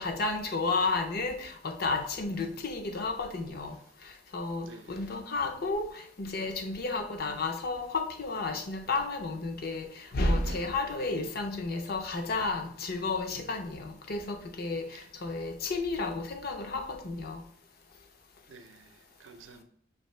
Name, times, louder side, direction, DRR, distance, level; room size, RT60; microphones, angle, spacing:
voice 1, 0.0-3.8 4.0-17.4, left 3 dB, 50° left, 0.6 m, -32 dB
voice 2, 4.6-5.1 10.4-10.8 18.5-19.6, right 3 dB, 80° right, 0.5 m, -50 dB
5.5 x 2.8 x 3.1 m
head